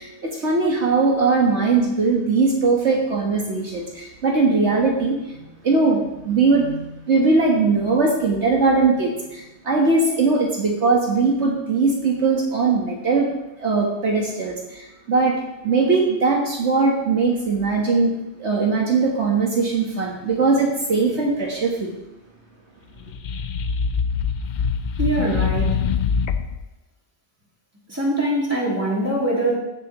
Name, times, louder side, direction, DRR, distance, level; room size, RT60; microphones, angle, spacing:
voice 1, 0.0-13.3 13.6-18.1 18.4-21.9, right 4 dB, 65° right, -1 dB, 1.6 m, -20 dB
sound 1, 23.0-26.6, left 6 dB, 65° left, 0.4 m, -23 dB
voice 2, 25.0-25.8 27.9-29.5, right 1 dB, 10° right, -5 dB, 2.8 m, -23 dB
16.0 x 7.1 x 3.0 m, 0.95 s
omnidirectional pair, 1.3 m